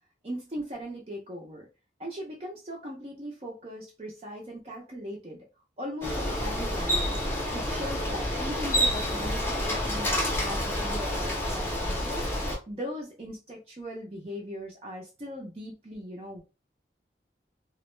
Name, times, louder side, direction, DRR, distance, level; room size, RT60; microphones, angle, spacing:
voice 1, 0.2-1.7 2.0-5.4 5.8-12.2 12.7-16.4, equal, 35° right, -2 dB, 0.5 m, -39 dB
Bicycle, 6.0-12.6, equal, 15° left, 0.6 m, -28 dB
2.2 x 2.1 x 3.1 m, 0.31 s
head